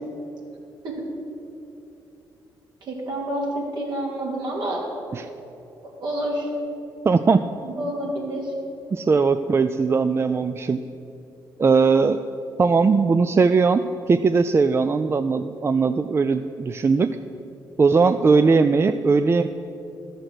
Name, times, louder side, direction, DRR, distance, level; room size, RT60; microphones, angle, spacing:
voice 1, 2.8-4.9 6.0-6.5 7.8-8.5, right 1 dB, 60° right, -2 dB, 3.2 m, -28 dB
voice 2, 7.1-7.4 8.9-10.8 11.6-12.2 12.6-17.1 17.8-19.5, right 4 dB, 30° right, 10 dB, 0.4 m, -19 dB
12.5 x 6.5 x 7.7 m, 2.9 s
cardioid pair, 75°, 8 cm